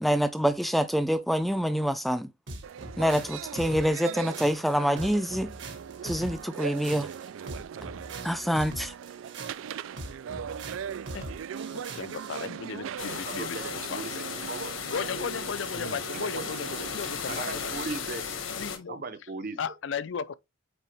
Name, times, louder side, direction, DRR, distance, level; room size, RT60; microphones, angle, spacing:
voice 1, 0.0-2.3 3.0-5.5 6.0-7.1 8.2-8.9, equal, ahead, 0.4 m, -26 dB
sound 1, 2.5-12.5, right 2 dB, 60° right, 1.6 m, -42 dB
sound 2, 2.6-17.9, right 8 dB, 80° right, 0.3 m, -40 dB
voice 2, 11.7-14.0 14.9-17.7 18.5-19.0 19.6-20.3, left 6 dB, 65° left, 0.4 m, -36 dB
sound 3, 13.0-18.8, left 6 dB, 80° left, 1.3 m, -36 dB
voice 3, 13.0-14.2 14.4-14.7 16.1-16.5 17.3-18.3 18.9-19.6, right 3 dB, 45° right, 0.7 m, -37 dB
8.5 x 3.7 x 3.4 m
head